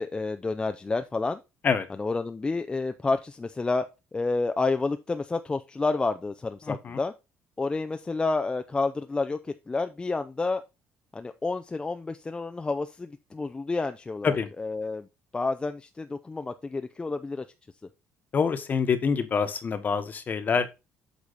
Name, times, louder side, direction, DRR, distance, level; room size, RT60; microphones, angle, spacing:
voice 1, 0.0-1.4 1.9-3.9 4.1-7.1 7.6-10.6 11.1-15.1 15.3-17.5, left 3 dB, 20° left, 0.6 m, -29 dB
voice 2, 6.7-7.0 14.2-14.5 18.3-20.7, left 5 dB, 35° left, 1.3 m, -26 dB
8.4 x 4.9 x 4.2 m
cardioid pair, 110°, 5 cm